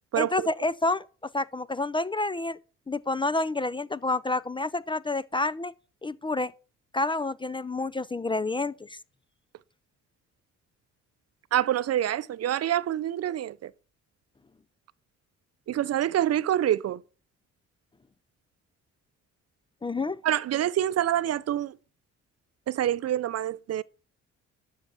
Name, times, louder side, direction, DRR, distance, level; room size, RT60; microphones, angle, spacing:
voice 1, 0.2-1.0 1.3-2.6 2.9-5.7 6.0-6.5 6.9-9.0 19.8-20.2, left 2 dB, 15° left, 0.4 m, -28 dB
voice 2, 11.5-13.7 15.7-17.0 20.2-21.7 22.7-23.8, right 11 dB, 55° right, 0.6 m, -26 dB
12.5 x 6.5 x 6.0 m
cardioid pair, 90°, 30 cm